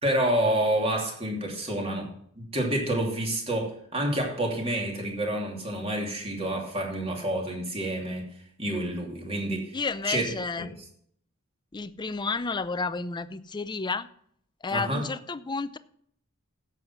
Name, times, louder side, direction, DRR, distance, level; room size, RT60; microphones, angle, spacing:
voice 1, 0.0-2.1 2.4-8.3 8.6-9.8 10.0-10.2 10.6-10.7 14.7-15.0, right 1 dB, 30° right, 0 dB, 2.8 m, -28 dB
voice 2, 9.7-10.7 11.7-14.1 14.6-15.8, left 4 dB, 20° left, 13 dB, 0.5 m, -31 dB
10.5 x 7.7 x 5.7 m, 0.65 s
head